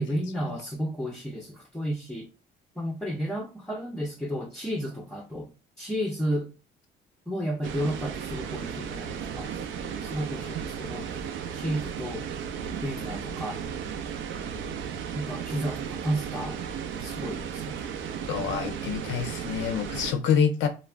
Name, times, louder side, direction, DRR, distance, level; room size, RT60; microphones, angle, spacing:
voice 1, 0.0-2.3 2.8-5.5 5.8-6.5 7.3-9.5 10.0-11.2 11.5-12.3 12.8-13.6 15.1-16.6 17.0-17.8, equal, 5° left, 0.5 m, -32 dB
sound 1, 7.6-20.1, right 7 dB, 80° right, 0.4 m, -35 dB
voice 2, 18.3-20.7, left 7 dB, 70° left, 0.5 m, -26 dB
2.4 x 2.1 x 3.2 m
cardioid pair, 90°, 20 cm